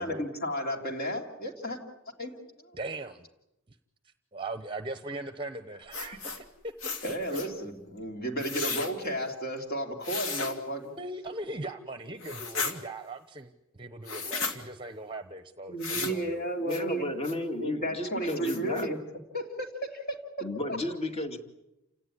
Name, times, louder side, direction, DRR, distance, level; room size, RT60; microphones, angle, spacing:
voice 1, 0.0-1.8 2.2-2.3 7.0-10.9 15.7-17.3 17.6-19.0 19.3-20.2 20.7-20.8, right 1 dB, 45° left, 4 dB, 3.2 m, -33 dB
voice 2, 2.7-3.3 3.7-3.8 4.0-6.7 11.0-16.5, right 2 dB, 25° right, 10 dB, 0.9 m, -39 dB
sound 1, 5.9-6.4 6.8-7.5 8.4-8.9 10.0-10.5 12.2-12.7 14.0-14.6 15.8-16.2 16.7-16.8 17.2-17.3 17.8-17.9 18.3-18.8, left 4 dB, 65° left, 2.8 m, -34 dB
voice 3, 16.6-18.9 20.4-21.4, left 1 dB, 30° left, 6 dB, 2.3 m, -33 dB
29.0 x 17.5 x 10.0 m, 0.92 s
head